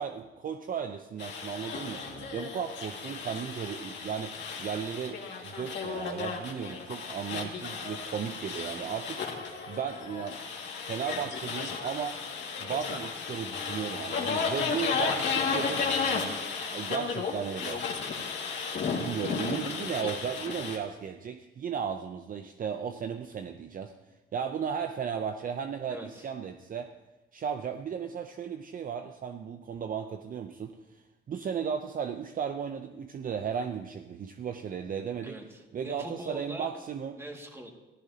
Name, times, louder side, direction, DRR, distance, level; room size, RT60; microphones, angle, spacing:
voice 1, 0.0-9.2 9.7-10.4 10.8-12.2 12.6-15.8 16.7-17.8 19.0-23.9 24.3-26.9 27.3-35.4 35.7-37.2, right 7 dB, 45° right, 7 dB, 0.6 m, -35 dB
sound 1, 1.2-20.8, left 5 dB, 65° left, 2.1 m, -34 dB
voice 2, 14.7-16.0 25.9-26.3 35.2-36.7 37.2-37.7, right 1 dB, 15° right, 1 dB, 2.1 m, -43 dB
15.0 x 14.0 x 2.9 m, 1.1 s
cardioid pair, 90°, 20 cm